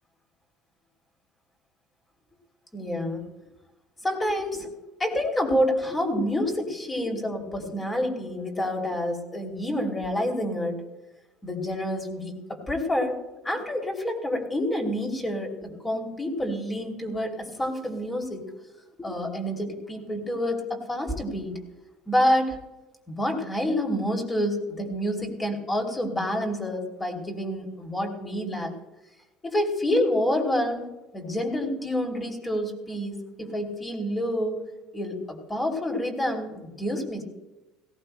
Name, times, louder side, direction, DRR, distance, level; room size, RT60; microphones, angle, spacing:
voice 1, 2.7-3.3 4.0-4.7 5.0-10.8 11.4-13.2 13.4-18.4 19.0-21.6 22.1-22.6 23.1-28.7 29.4-30.8 31.1-34.6 34.9-37.2, left 1 dB, 15° left, 1 dB, 2.8 m, -28 dB
17.5 x 16.5 x 2.2 m, 1.0 s
cardioid pair, 125°, 0 cm